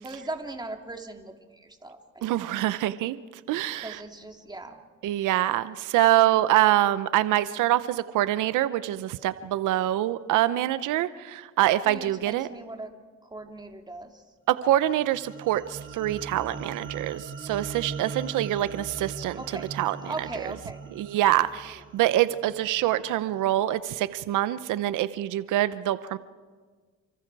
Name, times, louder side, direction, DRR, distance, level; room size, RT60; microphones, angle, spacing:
voice 1, 0.0-2.5 3.8-4.8 11.8-12.9 13.2-14.2 19.4-19.7 20.0-20.9, right 2 dB, 15° right, 4 dB, 2.6 m, -39 dB
voice 2, 2.2-3.2 3.5-4.0 5.0-12.5 14.5-19.4 19.7-20.3 21.0-26.2, right 14 dB, 90° right, 14 dB, 0.8 m, -25 dB
sound 1, 14.7-23.1, right 4 dB, 40° right, 3.0 m, -41 dB
29.5 x 25.5 x 4.7 m, 1.5 s
cardioid pair, 90°, 30 cm